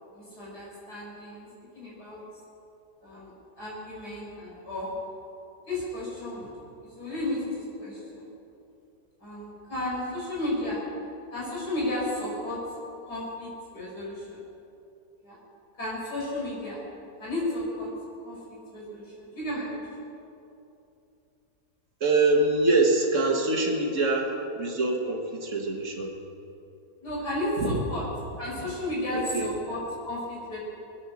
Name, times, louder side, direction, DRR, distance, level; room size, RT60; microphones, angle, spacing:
voice 1, 0.1-1.5 1.7-2.2 3.0-4.9 5.7-6.5 6.8-8.3 9.2-10.8 11.3-12.6 13.0-14.4 15.2-15.4 15.8-16.8 17.2-17.9 18.2-20.1 27.0-28.0 28.4-30.6, left 1 dB, 70° left, -6 dB, 5.7 m, -33 dB
voice 2, 22.0-26.1 27.6-27.8 29.1-29.5, right 2 dB, 45° right, 1 dB, 2.0 m, -24 dB
21.5 x 10.0 x 6.3 m, 2.8 s
omnidirectional pair, 1.8 m